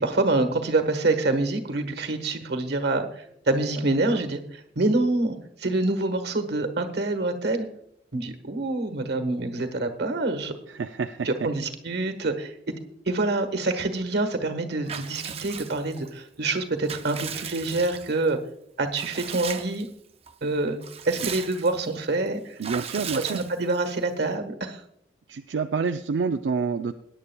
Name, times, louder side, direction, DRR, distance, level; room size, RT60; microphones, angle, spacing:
voice 1, 0.0-7.7 8.1-10.5 11.2-12.7 13.1-18.4 18.8-19.9 20.4-20.8 21.0-22.6 23.0-24.8, right 2 dB, 65° right, 8 dB, 1.4 m, -26 dB
voice 2, 10.7-11.3 22.6-23.4 25.3-26.9, right 5 dB, 85° right, 6 dB, 0.4 m, -28 dB
Water / Bathtub (filling or washing) / Liquid, 14.9-16.1 16.6-18.3 18.9-19.9 20.3-20.4 20.7-21.9 22.6-23.9, right 7 dB, 35° right, 0.6 m, -37 dB
21.0 x 10.0 x 2.3 m, 0.73 s
head